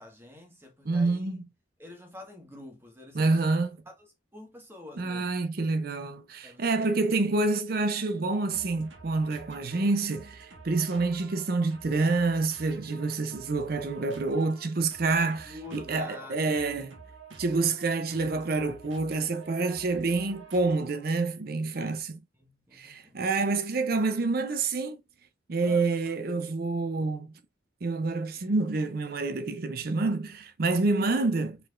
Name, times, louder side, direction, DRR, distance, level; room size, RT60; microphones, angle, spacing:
voice 1, 0.0-1.3 1.8-3.5 3.8-5.3 6.4-6.9 15.2-16.5 21.7-21.9 22.3-23.2 25.6-26.1, left 2 dB, 10° right, 1.5 m, -47 dB
voice 2, 0.9-1.4 3.1-3.7 5.0-17.0 17.4-22.2 22.7-25.0 25.5-27.3 27.8-31.6, right 3 dB, 50° right, 0.5 m, -27 dB
sound 1, 8.5-21.3, right 4 dB, 85° right, 1.4 m, -51 dB
4.5 x 4.3 x 2.4 m
head